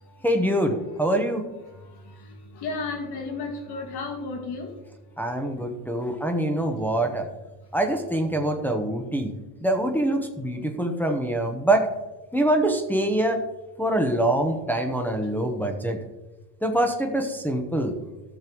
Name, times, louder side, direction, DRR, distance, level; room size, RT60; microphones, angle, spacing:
voice 1, 0.2-1.5 5.2-7.3 7.7-9.3 9.6-11.9 12.3-13.4 13.8-16.0 16.6-18.0, right 1 dB, 5° left, 2 dB, 1.0 m, -24 dB
voice 2, 0.8-1.2 1.6-4.7 8.3-8.7, left 3 dB, 50° left, 2 dB, 2.3 m, -35 dB
14.5 x 6.8 x 3.1 m, 1.1 s
supercardioid pair, 110°, 49 cm